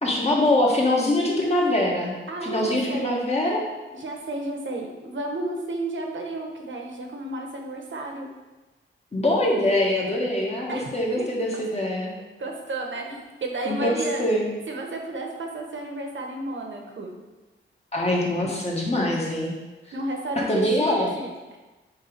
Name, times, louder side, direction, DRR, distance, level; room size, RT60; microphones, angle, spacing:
voice 1, 0.0-2.1 2.4-3.6 9.1-12.1 13.6-14.5 17.9-19.5 20.3-21.1, left 1 dB, 30° left, -3 dB, 1.6 m, -23 dB
voice 2, 2.3-3.3 3.9-8.3 10.7-10.9 11.2-11.3 12.4-14.2 14.7-17.1 19.9-21.3, right 2 dB, 65° right, 1 dB, 1.2 m, -32 dB
8.2 x 3.7 x 5.2 m, 1.2 s
wide cardioid pair, 125°, 21 cm